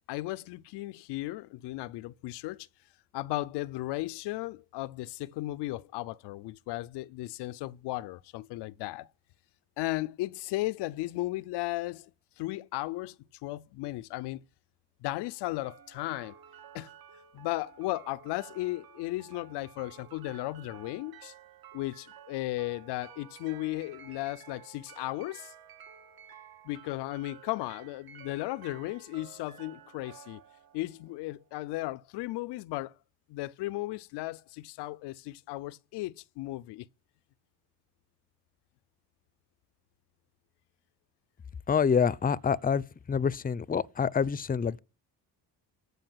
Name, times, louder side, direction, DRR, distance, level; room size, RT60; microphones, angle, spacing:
voice 1, 0.1-2.7 3.1-9.1 9.8-12.1 12.4-13.1 13.4-14.4 15.0-16.4 16.7-16.9 17.3-21.3 21.7-25.5 26.6-30.4 30.7-32.9 33.3-36.9, left 18 dB, 75° left, 0.7 m, -35 dB
sound 1, 15.6-31.6, right 9 dB, 60° right, 2.3 m, -53 dB
voice 2, 41.7-44.8, left 6 dB, 20° left, 0.7 m, -27 dB
15.0 x 5.3 x 9.2 m
supercardioid pair, 70°, 42 cm